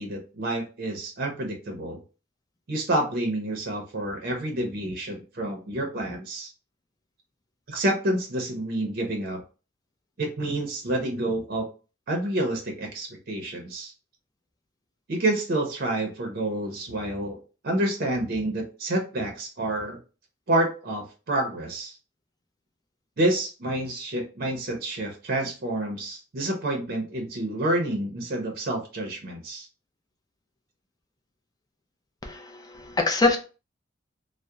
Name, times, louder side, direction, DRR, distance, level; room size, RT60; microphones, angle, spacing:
voice 1, 0.0-2.0 2.7-6.5 7.7-9.4 10.2-11.7 12.1-13.9 15.1-17.4 17.6-20.0 20.5-22.0 23.2-29.7, right 1 dB, 55° right, 2 dB, 0.6 m, -28 dB
voice 2, 32.2-33.4, left 3 dB, 20° left, 3 dB, 0.4 m, -24 dB
2.8 x 2.0 x 2.3 m, 0.34 s
head